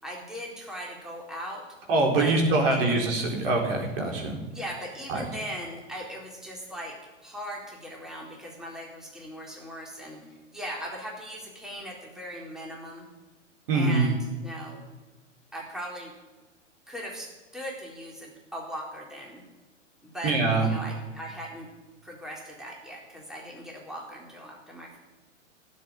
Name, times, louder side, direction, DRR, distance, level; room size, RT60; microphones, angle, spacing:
voice 1, 0.0-1.6 2.2-2.4 2.7-3.0 4.5-7.0 7.2-13.1 13.7-14.8 15.5-16.1 16.9-19.4 20.0-21.7 22.0-25.0, equal, ahead, -3 dB, 4.0 m, -39 dB
voice 2, 1.9-4.3 5.1-5.2 13.7-14.1 20.2-20.7, right 2 dB, 50° right, 1 dB, 4.2 m, -24 dB
16.5 x 8.1 x 9.6 m, 1.2 s
figure-of-eight pair, 110°, 37 cm